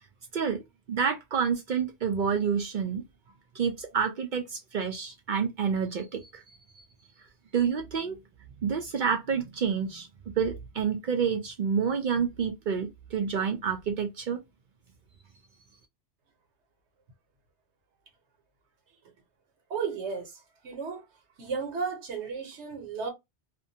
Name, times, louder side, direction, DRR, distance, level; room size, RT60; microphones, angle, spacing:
voice 1, 0.9-3.0 3.5-6.4 7.5-8.2 8.6-10.1 10.4-14.4, right 6 dB, 55° right, 0.6 m, -28 dB
voice 2, 19.7-21.1 21.4-23.1, right 5 dB, 80° right, 1.2 m, -34 dB
2.5 x 2.2 x 2.6 m
omnidirectional pair, 1.1 m